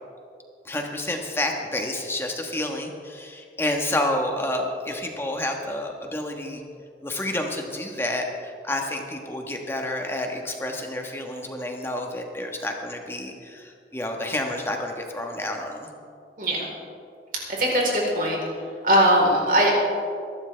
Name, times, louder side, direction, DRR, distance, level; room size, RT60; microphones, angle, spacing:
voice 1, 0.6-6.6 7.0-15.9, left 1 dB, 15° left, 2 dB, 1.3 m, -29 dB
voice 2, 17.5-18.4 18.8-19.7, equal, 50° right, -2 dB, 3.9 m, -20 dB
22.5 x 12.0 x 3.4 m, 2.4 s
head